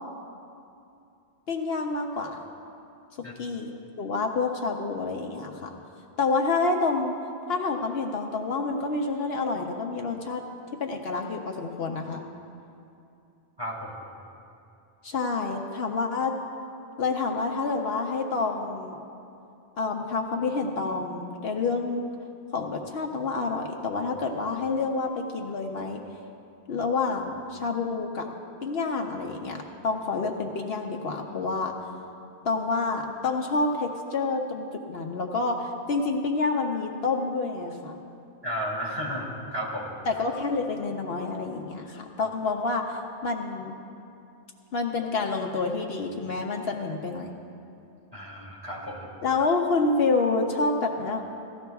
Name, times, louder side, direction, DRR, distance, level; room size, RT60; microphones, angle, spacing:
voice 1, 1.5-2.4 3.2-5.8 6.2-7.1 7.5-10.4 10.8-12.3 15.0-16.3 17.0-19.0 19.8-22.1 22.5-26.0 26.7-28.3 28.6-31.7 32.4-38.0 40.0-43.8 44.7-47.3 49.2-51.2, left 3 dB, 65° left, 2 dB, 1.0 m, -28 dB
voice 2, 13.6-13.9 38.4-39.9 48.1-49.1, equal, 20° right, -5 dB, 2.3 m, -33 dB
17.0 x 14.0 x 2.3 m, 2.7 s
omnidirectional pair, 1.1 m